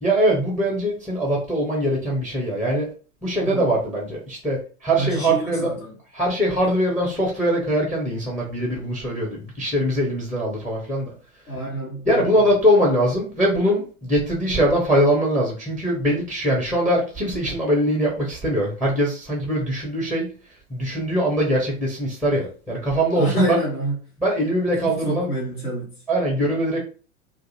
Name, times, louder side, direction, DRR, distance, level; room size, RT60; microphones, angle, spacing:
voice 1, 0.0-2.9 3.2-5.7 6.1-11.1 12.1-20.3 20.7-23.6 24.2-25.3 26.1-26.8, equal, ahead, 0.5 m, -22 dB
voice 2, 3.4-3.7 5.0-5.9 11.5-12.4 23.1-24.0 24.8-26.0, right 1 dB, 85° left, 1.2 m, -27 dB
2.5 x 2.4 x 2.7 m
figure-of-eight pair, 95°, 44 cm